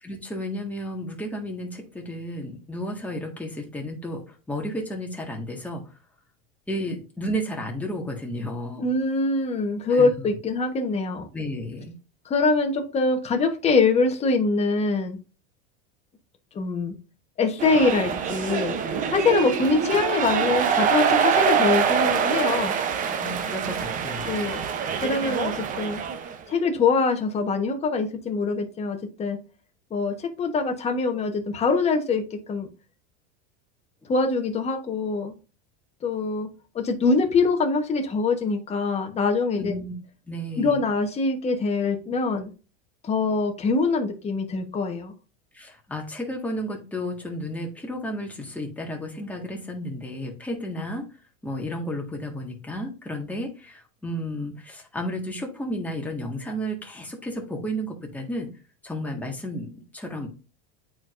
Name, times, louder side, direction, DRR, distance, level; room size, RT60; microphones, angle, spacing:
voice 1, 0.0-5.8 6.7-8.8 9.9-10.3 11.3-11.9 23.2-24.4 39.5-39.9 40.3-40.8 45.5-51.1 51.4-58.5 58.8-60.3, equal, 5° left, 0 dB, 1.6 m, -32 dB
voice 2, 8.8-11.3 12.2-15.2 16.5-16.9 17.4-18.8 19.1-22.7 24.2-24.6 25.0-26.0 26.5-29.4 29.9-32.7 34.1-35.3 36.0-36.5 36.7-39.8 40.6-42.5 43.0-45.1, left 4 dB, 20° left, 4 dB, 1.2 m, -24 dB
sound 1, 17.6-26.4, right 7 dB, 25° right, 0.7 m, -25 dB
8.9 x 4.8 x 2.5 m, 0.34 s
supercardioid pair, 140°, 29 cm